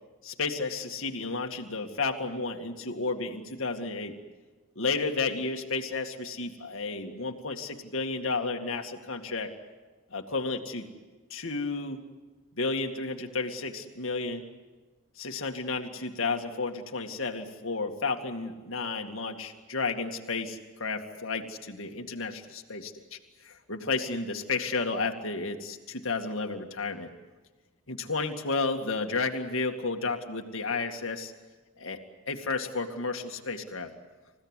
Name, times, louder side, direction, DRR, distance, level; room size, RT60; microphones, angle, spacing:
voice 1, 0.2-4.2 4.8-9.5 10.1-10.9 11.3-12.0 12.6-14.4 15.2-23.2 23.4-27.1 27.9-31.3 31.8-32.0 32.3-33.9, left 3 dB, 65° left, 3 dB, 2.2 m, -32 dB
29.0 x 16.0 x 9.9 m, 1.3 s
head